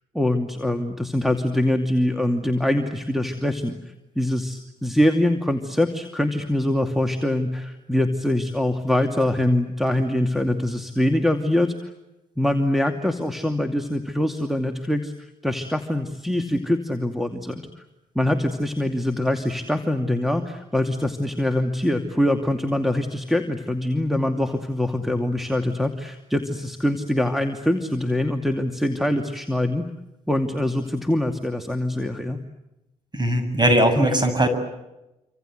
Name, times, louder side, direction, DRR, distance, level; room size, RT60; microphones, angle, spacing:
voice 1, 0.1-11.9 12.4-17.6 18.1-29.9 30.3-32.4, left 1 dB, ahead, 3 dB, 2.6 m, -24 dB
voice 2, 33.1-34.5, right 1 dB, 25° right, 9 dB, 7.8 m, -19 dB
27.5 x 26.0 x 8.0 m, 0.94 s
hypercardioid pair, 45°, 19 cm